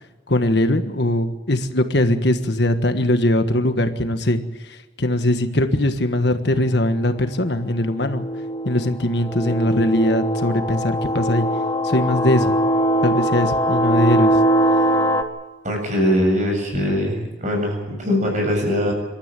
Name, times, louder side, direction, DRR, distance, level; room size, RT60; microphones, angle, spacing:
voice 1, 0.3-4.4 4.7-8.3 8.6-11.5 11.8-12.5 13.0-14.4, left 1 dB, 65° left, 7 dB, 1.5 m, -20 dB
sound 1, 6.9-7.0 7.8-15.2, right 1 dB, 20° left, 1.5 m, -21 dB
voice 2, 15.6-18.9, equal, 40° right, 2 dB, 7.6 m, -21 dB
26.5 x 13.5 x 9.0 m, 1.2 s
head